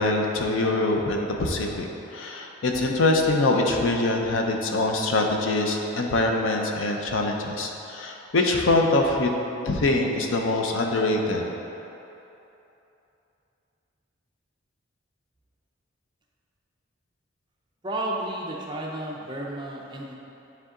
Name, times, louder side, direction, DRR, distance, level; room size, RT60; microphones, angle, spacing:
voice 1, 0.0-9.3 9.6-11.5, left 2 dB, 75° left, 2 dB, 0.6 m, -24 dB
voice 2, 17.8-20.1, right 1 dB, 20° right, -2 dB, 0.6 m, -32 dB
9.8 x 3.5 x 3.7 m, 2.9 s
head